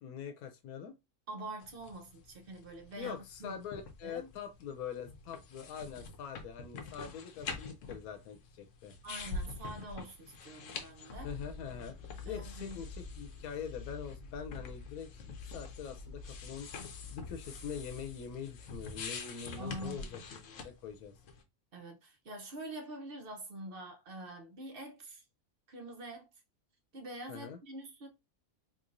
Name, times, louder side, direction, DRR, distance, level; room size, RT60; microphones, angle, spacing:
voice 1, 0.0-0.9 3.0-8.9 11.2-12.0 12.3-16.8 17.1-21.2 27.3-27.6, left 7 dB, 90° left, 1.1 m, -44 dB
voice 2, 1.3-3.6 4.0-4.3 9.0-11.3 12.2-12.8 19.6-20.2 21.7-25.2 25.7-26.3 26.9-28.1, right 1 dB, 50° right, 0.8 m, -45 dB
sound 1, 1.6-21.4, left 4 dB, 65° left, 1.0 m, -47 dB
sound 2, 11.1-19.4, left 4 dB, 25° left, 1.1 m, -48 dB
3.8 x 3.0 x 2.5 m
omnidirectional pair, 1.5 m